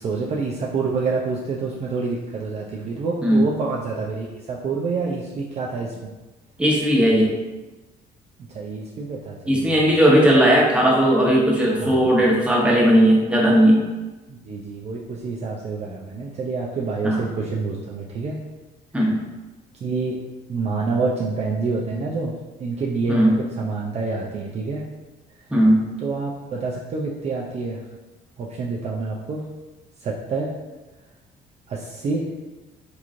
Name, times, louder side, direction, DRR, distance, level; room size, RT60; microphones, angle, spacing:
voice 1, 0.0-6.1 8.5-10.0 11.8-12.1 14.3-18.4 19.7-20.2 20.5-22.3 22.6-24.8 26.0-27.8 28.4-29.4 30.0-30.5 31.7-32.3, right 4 dB, 40° right, -3 dB, 0.4 m, -27 dB
voice 2, 6.6-7.3 9.5-13.9 17.0-17.2 18.9-19.2 23.1-23.4 25.5-25.8, equal, 5° right, -4 dB, 0.9 m, -17 dB
3.7 x 3.0 x 2.5 m, 1.1 s
cardioid pair, 110°, 17 cm